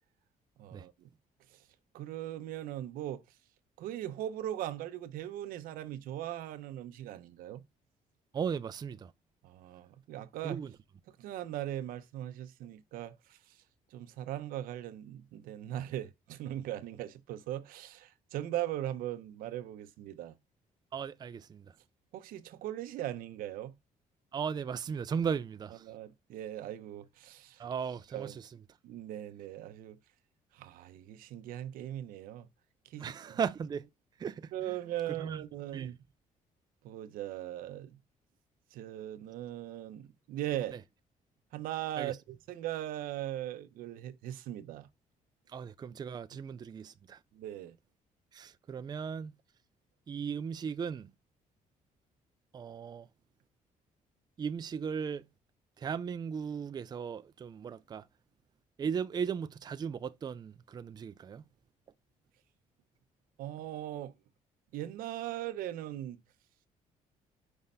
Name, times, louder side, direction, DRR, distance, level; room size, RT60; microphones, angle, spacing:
voice 1, 0.6-1.1 1.5-1.6 1.9-3.2 3.8-7.6 9.4-10.6 11.2-13.6 13.9-20.4 22.1-23.7 25.8-27.6 28.1-28.4 28.8-30.0 30.5-32.5 32.9-33.1 34.5-36.0 36.8-38.0 38.7-40.8 41.5-44.9 47.3-47.7 63.4-64.1 64.7-66.2, right 13 dB, 90° right, 0.7 m, -39 dB
voice 2, 8.3-9.1 10.4-10.7 20.9-21.7 24.3-25.8 27.6-28.5 33.0-33.9 34.2-34.8 35.2-35.5 35.7-35.9 42.0-42.2 45.5-47.2 48.3-49.3 50.1-51.1 52.5-53.1 54.4-55.3 55.8-58.0 58.8-61.4, right 6 dB, 30° right, 0.4 m, -37 dB
5.5 x 3.4 x 5.3 m
cardioid pair, 110°, 14 cm